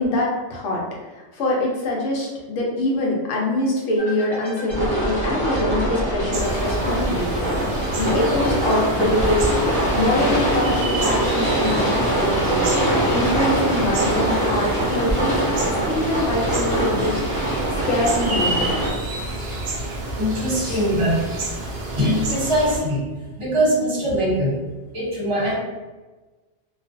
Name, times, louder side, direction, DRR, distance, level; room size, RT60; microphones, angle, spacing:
voice 1, 0.0-7.4 7.9-15.4 15.7-18.8 20.6-20.8, left 1 dB, 85° left, -2 dB, 1.0 m, -24 dB
sound 1, 4.0-9.6, left 1 dB, 35° left, 0.7 m, -35 dB
sound 2, 4.7-18.9, right 1 dB, 5° left, 1.0 m, -23 dB
sound 3, 6.3-22.8, right 2 dB, 65° right, 0.7 m, -29 dB
voice 2, 20.2-21.2 21.9-23.0 23.4-24.6 24.9-25.6, equal, 30° right, -6 dB, 0.7 m, -21 dB
2.4 x 2.2 x 2.4 m, 1.2 s
omnidirectional pair, 1.2 m